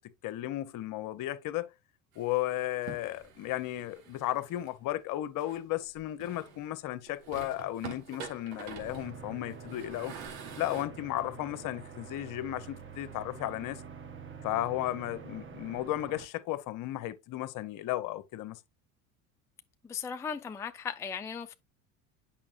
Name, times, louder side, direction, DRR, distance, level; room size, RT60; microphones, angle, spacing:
voice 1, 0.2-1.7 2.2-10.1 10.6-13.8 14.4-18.6, left 14 dB, 50° left, 0.9 m, -34 dB
sound 1, 2.1-4.7 5.4-6.7 7.1-10.8, right 6 dB, 75° right, 2.1 m, -47 dB
sound 2, 8.6-16.2, right 5 dB, 30° right, 1.3 m, -47 dB
voice 2, 19.8-21.5, left 7 dB, 5° left, 0.4 m, -37 dB
8.6 x 5.7 x 2.5 m
hypercardioid pair, 75°, 41 cm